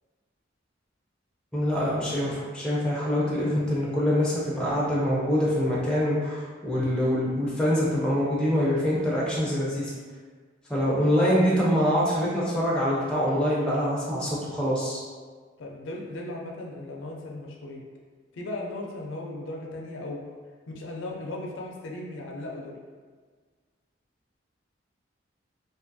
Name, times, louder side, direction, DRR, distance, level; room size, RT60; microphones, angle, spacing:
voice 1, 1.5-9.9 10.7-15.0, equal, 5° left, -6 dB, 0.4 m, -25 dB
voice 2, 15.6-17.8 18.3-20.2 20.7-22.8, left 2 dB, 75° left, -1 dB, 0.4 m, -37 dB
2.5 x 2.4 x 2.6 m, 1.5 s
head